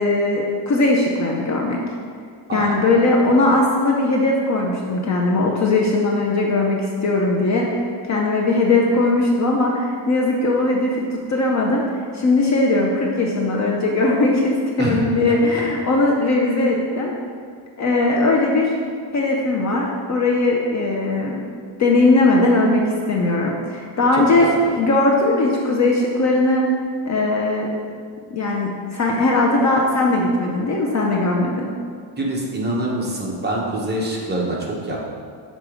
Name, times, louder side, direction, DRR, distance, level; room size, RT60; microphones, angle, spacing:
voice 1, 0.0-1.8 2.5-17.1 17.8-18.7 19.1-21.4 21.8-26.6 27.1-27.7 28.3-31.7, left 2 dB, 35° left, -1 dB, 0.5 m, -19 dB
voice 2, 32.2-35.0, right 1 dB, 20° right, -3 dB, 0.8 m, -25 dB
6.4 x 3.9 x 4.8 m, 2.1 s
cardioid pair, 170°, 49 cm